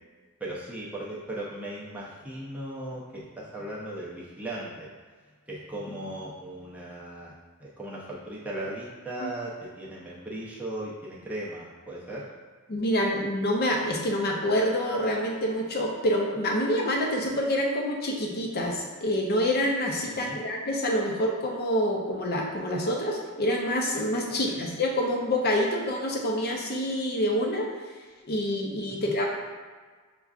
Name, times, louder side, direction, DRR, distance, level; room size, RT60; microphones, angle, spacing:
voice 1, 0.4-4.9 5.5-7.3 7.6-12.3 20.2-20.4 24.3-24.6 29.0-29.1, right 1 dB, 5° right, -6 dB, 0.6 m, -37 dB
voice 2, 12.7-27.7 28.2-29.2, equal, 45° left, 0 dB, 0.6 m, -27 dB
6.3 x 2.3 x 2.4 m, 1.5 s
head